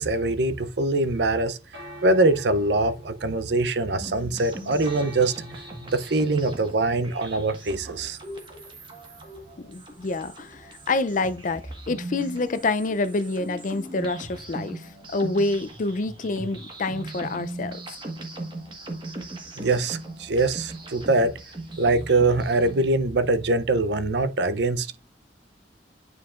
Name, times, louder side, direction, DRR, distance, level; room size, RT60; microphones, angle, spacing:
voice 1, 0.0-1.6 2.0-5.3 5.9-8.2 19.6-21.3 21.8-25.0, right 2 dB, 65° right, 0.6 m, -23 dB
sound 1, 1.7-20.4, right 1 dB, 85° right, 2.5 m, -50 dB
sound 2, 4.0-22.9, right 2 dB, 25° right, 1.5 m, -39 dB
voice 2, 9.6-14.8 15.1-17.8, left 2 dB, 45° left, 0.5 m, -27 dB
9.3 x 4.7 x 2.5 m
head